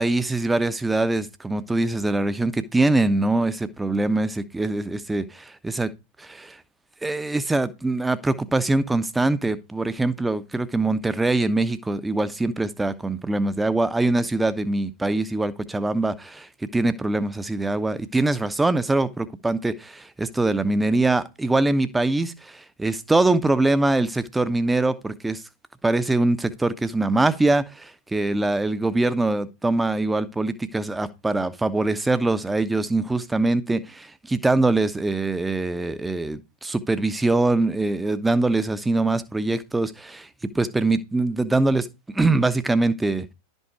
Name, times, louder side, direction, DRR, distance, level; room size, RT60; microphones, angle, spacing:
voice 1, 0.0-5.9 6.2-6.6 7.0-25.4 25.8-43.3, right 2 dB, 10° right, 1.0 m, -23 dB
12.0 x 5.5 x 4.6 m
figure-of-eight pair, 90°, 0 cm